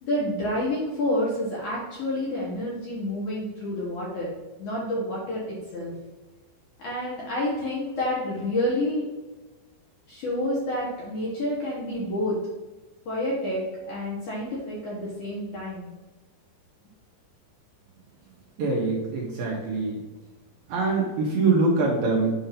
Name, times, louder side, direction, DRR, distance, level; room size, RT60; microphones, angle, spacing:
voice 1, 0.0-4.3 4.6-5.9 6.8-9.0 10.1-12.4 13.1-15.9, left 1 dB, 65° left, -6 dB, 2.0 m, -29 dB
voice 2, 18.6-20.0 20.7-22.3, right 3 dB, 70° right, -3 dB, 2.4 m, -24 dB
7.8 x 2.7 x 5.7 m, 1.2 s
omnidirectional pair, 5.2 m